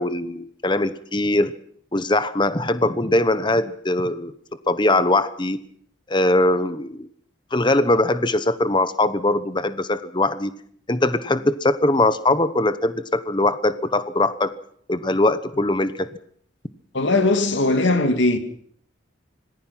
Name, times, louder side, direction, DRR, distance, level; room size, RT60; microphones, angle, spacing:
voice 1, 0.0-1.5 1.9-4.3 4.7-5.6 6.1-7.1 7.5-10.5 10.9-14.5 14.9-16.1, left 2 dB, 25° left, 1.0 m, -21 dB
voice 2, 16.9-18.4, left 2 dB, 70° left, 2.4 m, -19 dB
26.0 x 19.5 x 5.9 m
head